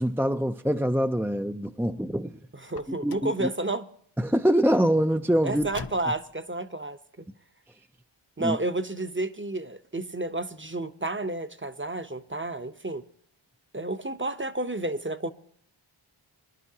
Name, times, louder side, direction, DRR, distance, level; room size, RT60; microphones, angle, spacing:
voice 1, 0.0-2.4 3.0-3.5 4.2-5.7 8.4-8.6, equal, 5° right, 0.4 m, -24 dB
Car, 2.6-3.4 5.5-6.4, left 7 dB, 50° left, 0.6 m, -43 dB
voice 2, 2.7-3.9 5.4-7.3 8.4-13.0 13.7-15.3, right 2 dB, 25° right, 0.8 m, -31 dB
23.0 x 11.0 x 2.8 m
wide cardioid pair, 40°, 49 cm